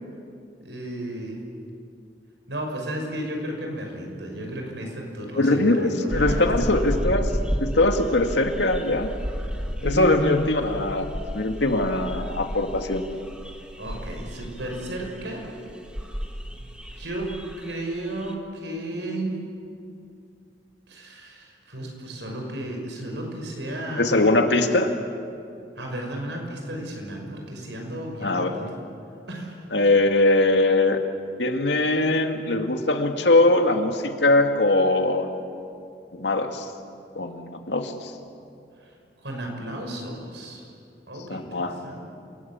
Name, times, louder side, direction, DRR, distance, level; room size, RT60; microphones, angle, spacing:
voice 1, 0.6-1.4 2.5-6.7 9.8-10.2 13.8-15.4 16.5-16.6 16.9-17.3 17.6-19.4 20.9-24.3 25.8-28.7 29.3-29.6 39.2-40.6 41.1-42.0, right 1 dB, 90° right, 1 dB, 6.0 m, -33 dB
voice 2, 5.4-7.3 7.6-9.1 9.8-11.1 11.3-13.0 24.0-24.9 28.2-28.6 29.7-31.0 31.4-35.4 36.1-36.7 37.2-38.1 41.3-41.8, left 2 dB, 85° left, 5 dB, 2.1 m, -21 dB
sound 1, 6.1-18.3, equal, 5° right, 1.8 m, -32 dB
27.5 x 18.5 x 8.8 m, 2.5 s
head